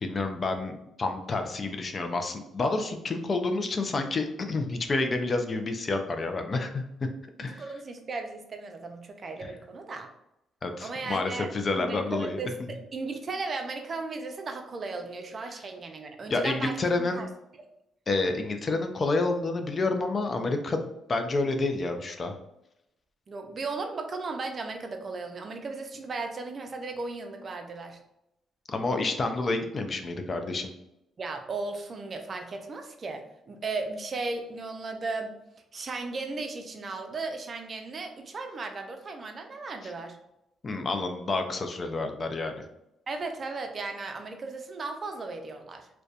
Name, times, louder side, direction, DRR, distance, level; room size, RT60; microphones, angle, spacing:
voice 1, 0.0-7.1 7.4-7.6 9.4-9.5 10.6-12.4 16.3-17.2 18.1-22.3 28.7-30.7 39.8-39.9 40.6-42.6, left 3 dB, 40° left, 6 dB, 0.3 m, -29 dB
voice 2, 7.5-10.1 10.8-11.5 11.7-12.6 12.9-17.3 17.6-17.7 23.3-28.0 31.2-35.3 35.7-40.2 43.1-45.9, right 3 dB, 40° right, 5 dB, 0.4 m, -36 dB
2.6 x 2.1 x 2.3 m, 0.86 s
cardioid pair, 90°, 0 cm